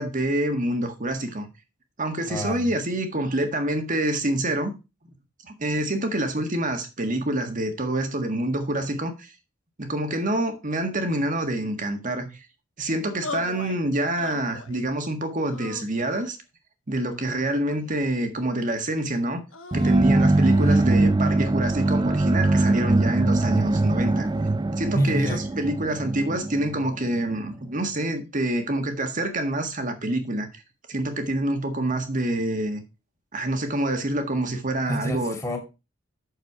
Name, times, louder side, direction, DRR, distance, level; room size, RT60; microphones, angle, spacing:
voice 1, 0.0-1.5 2.0-4.7 5.4-9.3 9.8-12.3 12.8-16.4 16.9-19.4 19.7-24.3 24.8-30.6 30.9-32.8 33.3-35.4, right 1 dB, 40° right, 1.7 m, -26 dB
voice 2, 2.3-2.7 24.9-25.4 34.9-35.6, equal, 15° left, 2.4 m, -27 dB
oh boy, 13.2-13.8 14.2-14.8 15.5-16.4 17.1-18.1 19.5-20.9, left 3 dB, 70° left, 1.5 m, -39 dB
sound 1, 19.7-27.5, right 2 dB, 20° right, 0.4 m, -22 dB
8.2 x 6.7 x 4.7 m
head